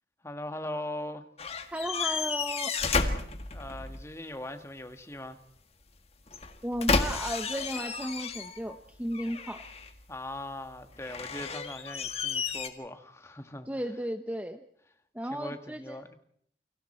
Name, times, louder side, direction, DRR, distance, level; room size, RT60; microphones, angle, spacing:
voice 1, 0.2-1.2 3.5-5.4 10.1-13.7 15.3-16.2, left 1 dB, 15° left, 1.5 m, -40 dB
sound 1, 1.4-4.0 6.3-8.8 9.1-10.0 11.0-12.7, left 4 dB, 35° left, 1.8 m, -32 dB
voice 2, 1.7-2.7 6.6-9.6 13.7-14.6 15.1-16.0, equal, 10° right, 0.9 m, -34 dB
29.5 x 24.5 x 4.4 m
head